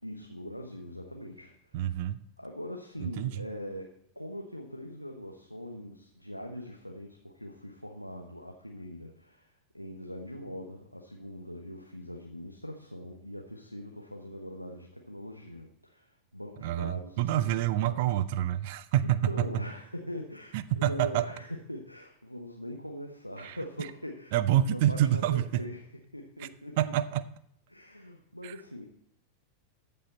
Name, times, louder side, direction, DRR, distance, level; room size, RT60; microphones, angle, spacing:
voice 1, 0.0-2.0 2.4-17.5 17.8-18.0 19.0-25.8 26.1-26.8 27.7-28.9, left 1 dB, 90° left, 2 dB, 1.0 m, -42 dB
voice 2, 1.7-2.2 3.0-3.5 16.6-19.6 20.5-21.3 23.4-23.6 24.3-25.6 26.4-26.5 26.8-27.3 28.4-28.5, right 12 dB, 50° right, 16 dB, 0.5 m, -27 dB
14.0 x 5.5 x 4.3 m, 0.75 s
figure-of-eight pair, 90°, 0 cm